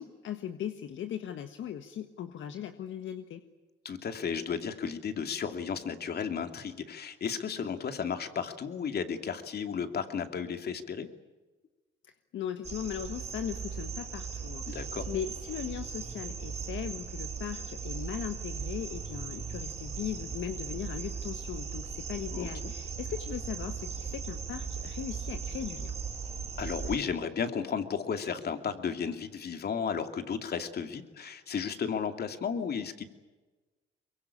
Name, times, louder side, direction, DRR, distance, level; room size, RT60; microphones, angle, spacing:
voice 1, 0.0-3.4 12.3-25.9, left 9 dB, 75° left, 7 dB, 1.5 m, -38 dB
voice 2, 3.8-11.1 14.7-15.1 22.3-22.7 26.6-33.1, left 6 dB, 55° left, 7 dB, 2.7 m, -34 dB
sound 1, 12.6-27.0, right 6 dB, 35° right, 5.0 m, -38 dB
24.0 x 23.0 x 8.7 m, 1.2 s
cardioid pair, 90°, 20 cm